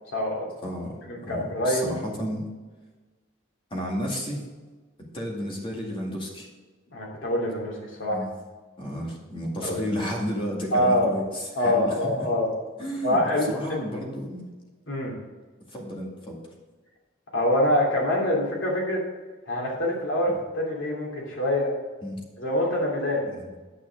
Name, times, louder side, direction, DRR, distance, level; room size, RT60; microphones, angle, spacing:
voice 1, 0.1-0.5 1.1-1.9 6.9-8.2 9.6-9.9 10.7-11.1 11.5-12.5 13.0-13.8 14.9-15.1 17.3-19.0 19.5-21.7 22.4-23.3, left 1 dB, 70° left, -2 dB, 2.9 m, -25 dB
voice 2, 0.6-2.5 3.7-4.4 5.0-6.5 8.1-8.3 8.8-12.3 12.8-13.2 13.5-14.4 15.7-16.4 20.3-20.4 22.0-22.2 23.3-23.5, equal, 25° left, -1 dB, 2.1 m, -32 dB
9.3 x 5.9 x 5.2 m, 1.3 s
head